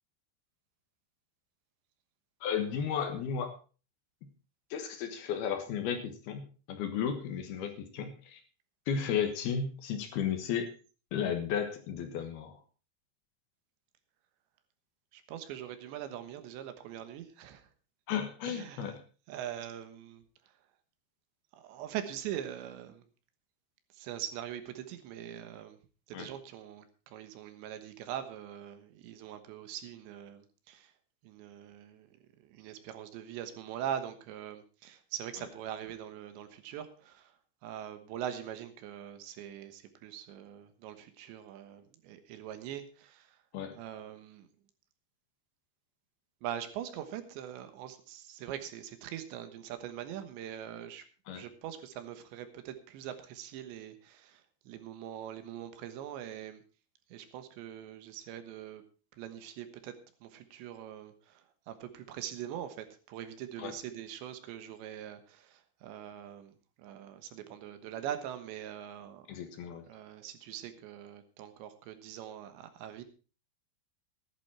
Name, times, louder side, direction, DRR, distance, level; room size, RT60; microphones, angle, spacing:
voice 1, 2.4-3.5 4.7-8.4 8.9-10.7 11.1-12.6 18.1-18.9 26.1-26.3 43.5-43.8 51.3-51.4 63.6-63.7 69.3-69.8, left 7 dB, 70° left, 7 dB, 3.0 m, -34 dB
voice 2, 15.1-17.7 18.5-18.9 19.3-20.2 21.6-23.0 23.9-25.8 26.1-30.9 31.2-37.3 37.6-43.4 43.8-44.5 46.4-51.1 51.3-56.6 57.1-58.8 59.2-60.0 60.2-69.3 69.9-73.0, right 10 dB, 80° right, 9 dB, 3.5 m, -42 dB
14.5 x 11.5 x 4.3 m, 0.36 s
omnidirectional pair, 5.2 m